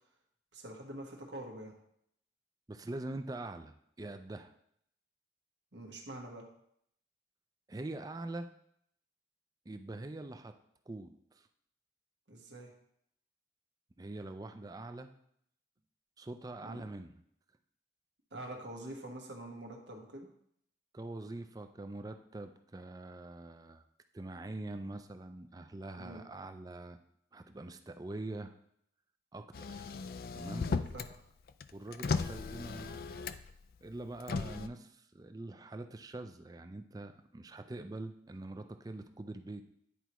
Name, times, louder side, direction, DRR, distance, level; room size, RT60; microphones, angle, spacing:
voice 1, 0.5-1.8 5.7-6.5 12.3-12.7 16.6-16.8 18.3-20.3 26.0-26.3 30.6-31.1, right 1 dB, 90° right, 1 dB, 1.4 m, -46 dB
voice 2, 2.7-4.5 7.7-8.5 9.7-10.5 10.9-11.5 14.0-15.1 16.2-17.1 20.9-23.8 24.1-27.0 27.3-28.5 29.3-29.9 30.3-30.7 31.7-33.2 33.8-39.7, right 2 dB, 20° right, 8 dB, 0.4 m, -44 dB
Motor vehicle (road), 29.5-31.1 31.5-33.6 34.2-34.7, left 4 dB, 55° left, 0.3 m, -36 dB
10.0 x 4.6 x 3.0 m, 0.71 s
head